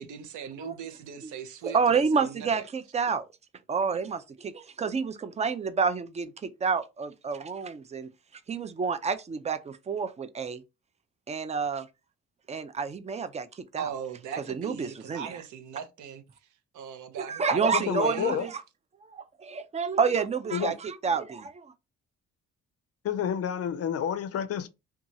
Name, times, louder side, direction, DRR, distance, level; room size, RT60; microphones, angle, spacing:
voice 1, 0.0-2.7 13.8-16.2 16.7-18.4, right 8 dB, 75° right, 0.6 m, -39 dB
voice 2, 1.6-3.3 3.7-8.1 8.5-10.6 11.3-11.9 12.5-13.9 14.5-15.3 17.2-18.6 19.1-21.7, right 5 dB, 25° right, 0.4 m, -29 dB
voice 3, 17.7-18.5 20.5-20.7 23.0-24.7, left 8 dB, 55° left, 0.5 m, -29 dB
2.8 x 2.3 x 2.6 m
cardioid pair, 90°, 30 cm